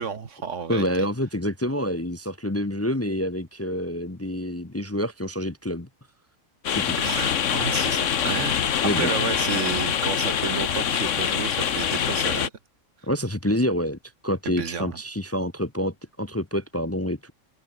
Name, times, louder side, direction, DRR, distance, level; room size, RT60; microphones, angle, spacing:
voice 1, 0.0-0.9 7.0-12.5 14.5-15.0, right 6 dB, 70° right, 1.8 m, -31 dB
voice 2, 0.7-5.9 6.7-7.0 8.8-9.1 13.0-17.3, equal, 15° left, 0.9 m, -27 dB
sound 1, 6.6-12.5, left 8 dB, 70° left, 1.4 m, -25 dB
omnidirectional pair, 1.3 m